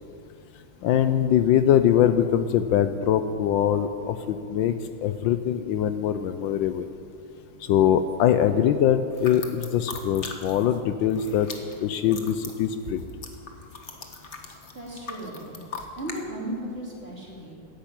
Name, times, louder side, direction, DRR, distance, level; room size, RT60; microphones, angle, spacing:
voice 1, 0.8-4.7 5.0-6.9 7.7-11.5 11.8-13.0, left 10 dB, 80° left, 10 dB, 1.3 m, -22 dB
sound 1, 9.1-10.8 11.0-16.2, left 4 dB, 40° left, 1.4 m, -39 dB
voice 2, 14.7-15.6 16.0-17.5, right 1 dB, 30° right, -3 dB, 3.4 m, -35 dB
14.0 x 10.5 x 8.8 m, 2.5 s
omnidirectional pair, 2.1 m